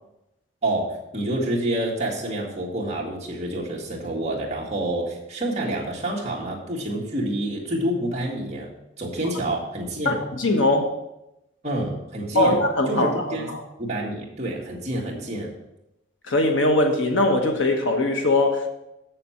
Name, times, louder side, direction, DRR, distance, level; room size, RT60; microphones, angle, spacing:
voice 1, 0.6-8.7 9.0-10.2 11.6-12.6 12.9-13.5 13.8-15.5, right 1 dB, 35° right, -3 dB, 2.0 m, -28 dB
voice 2, 10.0-10.9 12.3-13.6 16.3-18.7, left 2 dB, 75° left, 3 dB, 1.3 m, -21 dB
7.8 x 6.8 x 5.8 m, 0.88 s
head